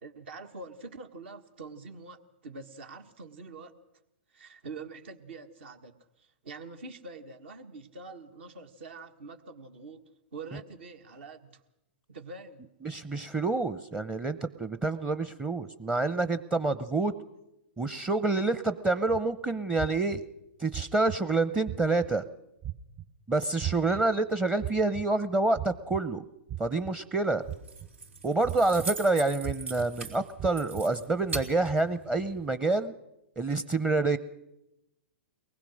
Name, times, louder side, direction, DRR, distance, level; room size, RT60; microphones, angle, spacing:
voice 1, 0.0-3.7 4.3-10.0 10.3-11.6 12.1-12.7, right 3 dB, 70° right, 6 dB, 1.7 m, -45 dB
voice 2, 12.8-17.1 17.8-20.2 20.6-22.2 23.3-26.2 26.6-27.4 28.2-32.9 33.4-34.2, right 3 dB, 15° right, 12 dB, 0.7 m, -27 dB
sound 1, 19.1-19.2 19.8-20.2 20.7-21.2 21.7-22.1 22.6-23.0 23.6-24.0 24.6-25.0 25.5-26.0 26.5-26.9 27.4-27.9 28.4-28.9 29.4-29.9 30.4-30.8 31.3-31.7, right 13 dB, 45° right, 1.7 m, -36 dB
Keys jangling, 27.4-32.5, right 3 dB, 85° right, 4.1 m, -41 dB
23.0 x 19.5 x 6.5 m, 0.90 s
hypercardioid pair, 115°, 6 cm